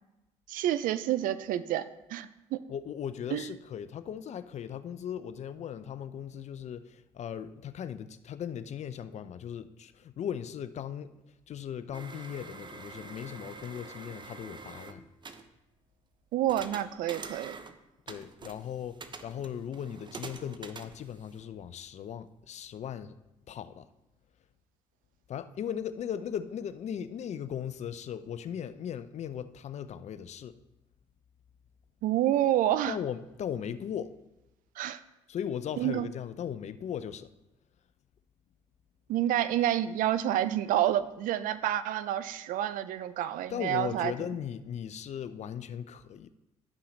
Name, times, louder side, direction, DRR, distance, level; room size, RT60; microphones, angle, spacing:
voice 1, 0.5-2.6 3.3-3.4 16.3-17.6 32.0-33.0 34.8-35.0 35.8-36.1 39.1-44.1, right 12 dB, 65° right, 0.5 m, -28 dB
voice 2, 2.7-15.0 18.1-23.1 23.5-23.9 25.3-30.6 32.9-34.1 35.3-37.3 43.5-46.3, left 9 dB, 50° left, 0.6 m, -38 dB
sound 1, 11.9-15.5 16.5-17.8 18.1-21.6, right 4 dB, 30° right, 0.8 m, -46 dB
11.5 x 5.6 x 4.0 m
hypercardioid pair, 60°, 15 cm